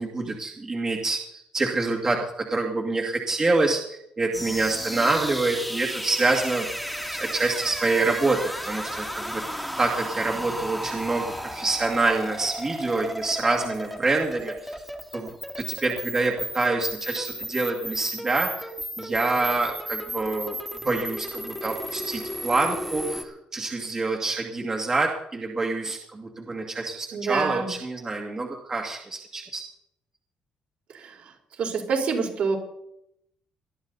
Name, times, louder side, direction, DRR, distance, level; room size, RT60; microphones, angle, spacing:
voice 1, 0.0-6.7 7.1-9.4 9.8-14.8 15.1-15.3 15.6-18.7 19.0-20.6 20.8-29.6, right 3 dB, 25° right, 0 dB, 2.3 m, -26 dB
sound 1, 4.3-23.2, equal, ahead, 2.2 m, -34 dB
voice 2, 27.1-27.7 30.9-31.3 31.6-32.6, right 5 dB, 60° right, 0 dB, 4.6 m, -27 dB
20.0 x 12.5 x 4.1 m, 0.75 s
cardioid pair, 130°, 2 cm